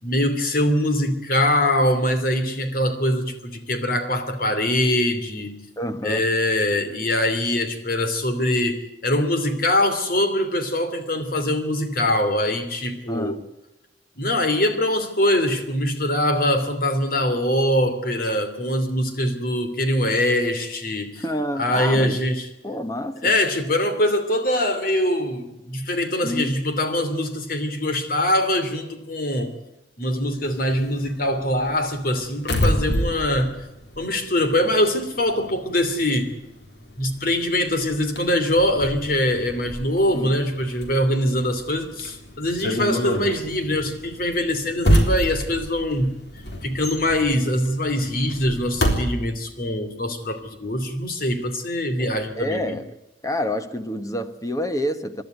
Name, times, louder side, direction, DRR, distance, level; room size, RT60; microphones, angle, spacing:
voice 1, 0.0-5.6 6.0-13.4 14.2-21.2 21.5-22.5 23.2-29.5 30.0-33.6 34.0-36.3 37.0-46.2 46.6-52.7, left 1 dB, 55° left, 2.9 m, -23 dB
voice 2, 5.8-6.3 13.1-13.5 21.2-22.2 22.6-23.4 26.2-26.5 40.1-40.4 52.0-53.0 53.2-55.2, left 1 dB, 20° left, 1.3 m, -28 dB
sound 1, 30.4-34.8 35.1-49.0, equal, 70° left, 3.7 m, -27 dB
27.5 x 12.0 x 9.4 m
head